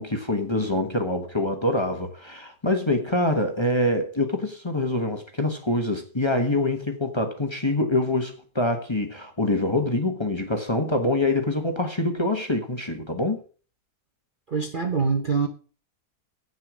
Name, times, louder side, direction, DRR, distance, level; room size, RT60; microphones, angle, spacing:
voice 1, 0.0-13.4, left 1 dB, 20° left, 1.2 m, -25 dB
voice 2, 14.5-15.5, right 5 dB, 40° right, 0.9 m, -24 dB
8.3 x 7.8 x 6.2 m
omnidirectional pair, 1.7 m